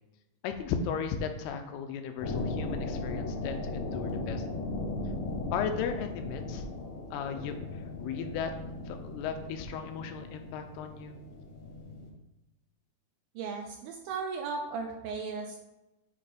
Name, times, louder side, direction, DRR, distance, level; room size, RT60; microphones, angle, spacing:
voice 1, 0.4-4.5 5.5-6.7 7.1-8.5 8.9-11.2, left 6 dB, 85° left, 7 dB, 2.6 m, -36 dB
sound 1, 2.2-12.1, left 2 dB, 65° left, 1.8 m, -37 dB
voice 2, 13.4-15.6, right 4 dB, 80° right, 3 dB, 2.1 m, -36 dB
8.7 x 3.2 x 5.1 m, 1.0 s
omnidirectional pair, 4.7 m